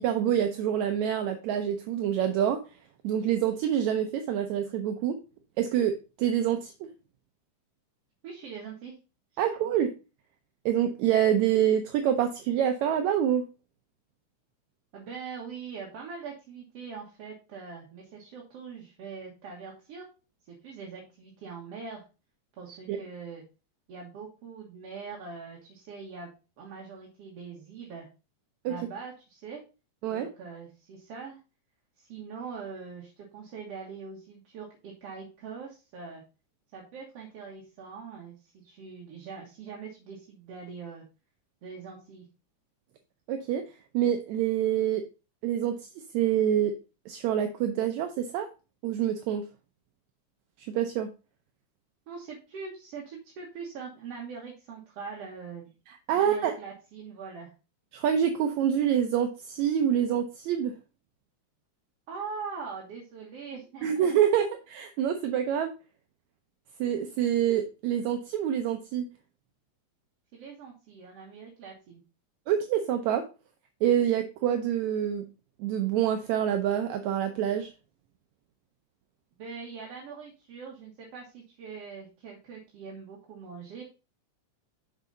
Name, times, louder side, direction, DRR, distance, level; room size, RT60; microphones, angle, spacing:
voice 1, 0.0-2.6 3.0-5.2 5.6-6.9 9.4-9.9 10.7-13.5 22.9-23.0 28.6-28.7 30.0-30.3 43.3-43.6 43.9-45.0 45.4-45.9 46.1-46.7 47.1-48.5 48.8-49.4 50.6-51.1 55.9-56.5 57.9-60.8 63.8-65.7 66.8-69.1 72.5-73.2 73.8-75.2 75.6-77.7, right 9 dB, 75° right, 6 dB, 2.0 m, -26 dB
voice 2, 8.2-9.0 9.3-9.4 14.9-20.1 20.5-22.0 22.6-23.4 23.9-26.3 26.6-28.1 28.7-29.6 30.1-31.4 32.0-36.2 36.7-41.0 41.6-42.3 52.1-55.7 56.1-57.5 62.1-64.5 70.3-72.0 79.4-83.8, right 5 dB, 60° right, -2 dB, 2.3 m, -42 dB
6.6 x 6.0 x 3.9 m, 0.31 s
omnidirectional pair, 3.4 m